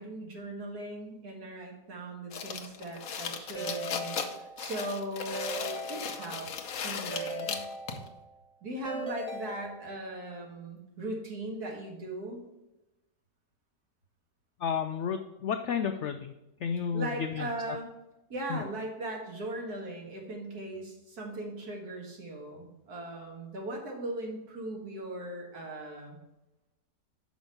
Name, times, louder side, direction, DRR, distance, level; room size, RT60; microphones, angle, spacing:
voice 1, 0.0-7.6 8.6-12.4 16.9-17.9 18.3-26.2, right 1 dB, 65° right, 0 dB, 2.2 m, -39 dB
sound 1, 2.3-8.1, left 7 dB, 60° left, 1.1 m, -37 dB
Keyboard (musical) / Ringtone, 3.6-4.9 5.3-6.6 7.1-8.4 8.9-10.2, right 1 dB, 5° left, 1.0 m, -39 dB
voice 2, 14.6-16.3 16.6-17.8 18.5-18.6, left 7 dB, 80° left, 7 dB, 0.6 m, -32 dB
6.1 x 5.2 x 6.9 m, 0.94 s
omnidirectional pair, 1.8 m